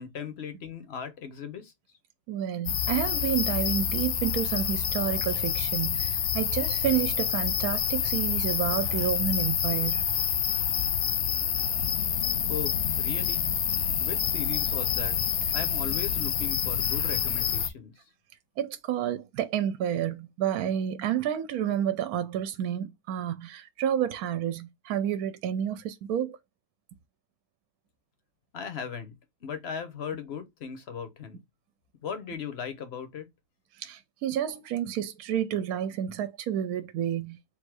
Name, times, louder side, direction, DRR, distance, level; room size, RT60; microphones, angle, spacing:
voice 1, 0.0-1.7 12.5-13.4 13.9-15.2 15.5-17.9 28.5-29.2 29.4-31.4 32.0-33.3, left 7 dB, 50° left, 0.9 m, -37 dB
voice 2, 2.3-10.1 18.6-26.4 33.8-37.4, right 10 dB, 75° right, 1.0 m, -30 dB
sound 1, 2.7-17.7, left 9 dB, 75° left, 0.5 m, -28 dB
3.6 x 2.6 x 4.6 m
omnidirectional pair, 1.6 m